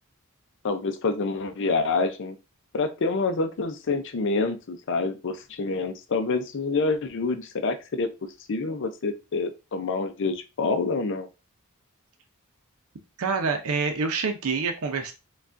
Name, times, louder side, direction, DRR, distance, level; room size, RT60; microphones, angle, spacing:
voice 1, 0.6-2.4 2.7-8.1 8.5-11.3, left 3 dB, 60° left, 8 dB, 0.5 m, -27 dB
voice 2, 13.2-15.1, right 4 dB, 75° right, 6 dB, 0.6 m, -26 dB
4.7 x 2.3 x 2.5 m, 0.28 s
head